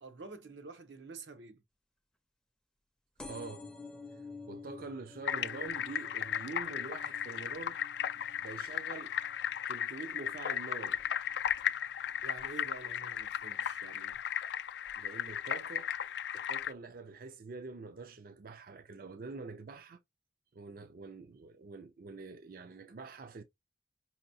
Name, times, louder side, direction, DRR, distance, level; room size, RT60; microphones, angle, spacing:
voice 1, 0.0-1.6 12.2-14.2, right 4 dB, 85° right, 0.9 m, -48 dB
sound 1, 3.2-10.4 10.9-11.4 12.2-12.3 12.5-12.6 12.9-13.0, left 3 dB, 5° left, 0.5 m, -51 dB
voice 2, 3.3-3.7 4.1-7.8 8.4-9.2 9.7-11.0 15.0-15.9 16.3-20.0 20.5-23.4, right 4 dB, 55° right, 0.4 m, -46 dB
sound 2, 5.2-16.7, left 9 dB, 70° left, 0.3 m, -36 dB
5.3 x 2.9 x 2.7 m
head